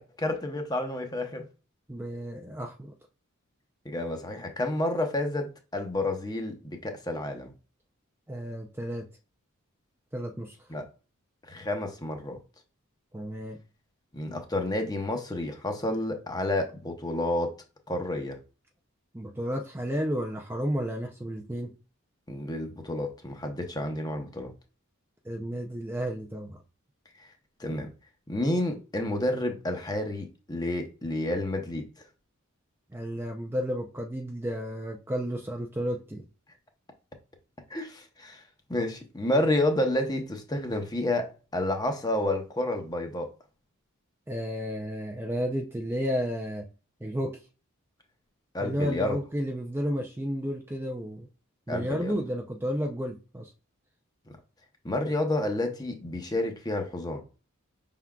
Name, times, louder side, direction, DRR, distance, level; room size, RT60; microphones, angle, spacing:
voice 1, 0.0-1.4 3.8-7.5 10.7-10.8 11.5-12.4 14.1-17.6 17.9-18.4 22.3-24.5 27.6-27.9 28.3-31.8 37.7-38.4 38.7-43.3 48.5-49.2 51.7-52.1 54.8-57.2, left 1 dB, 20° left, 0.8 m, -30 dB
voice 2, 1.9-2.9 8.3-9.1 10.1-10.6 13.1-13.6 19.1-21.8 25.3-26.6 32.9-36.2 44.3-46.6 47.0-47.4 48.6-51.3 51.7-53.5, equal, 10° right, 0.5 m, -32 dB
5.9 x 3.7 x 2.3 m
head